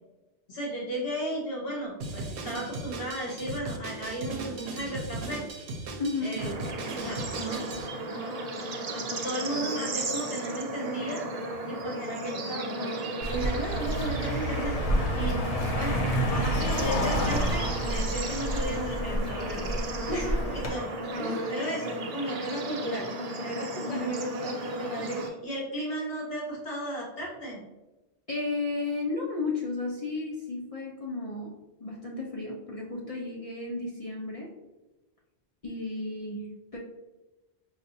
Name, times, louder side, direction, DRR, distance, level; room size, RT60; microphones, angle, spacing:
voice 1, 0.5-5.4 6.2-6.6 7.0-7.7 8.1-8.4 8.9-11.2 11.7-14.7 15.1-15.4 15.8-19.7 20.1-20.9 21.5-23.1 23.4-27.6, right 1 dB, 60° left, -4 dB, 1.3 m, -35 dB
Drum kit, 2.0-7.9, right 2 dB, 75° right, 0.8 m, -37 dB
voice 2, 6.0-6.4 20.1-20.4 21.2-21.5 23.8-24.1 28.3-31.5 31.8-34.5 35.6-36.8, left 3 dB, 40° left, -4 dB, 0.6 m, -33 dB
Bird / Insect / Frog, 6.4-25.3, right 1 dB, 50° right, 0.5 m, -35 dB
Car passing by, 13.2-20.7, equal, 80° left, 1.1 m, -29 dB
5.5 x 2.4 x 2.7 m, 1.1 s
omnidirectional pair, 1.2 m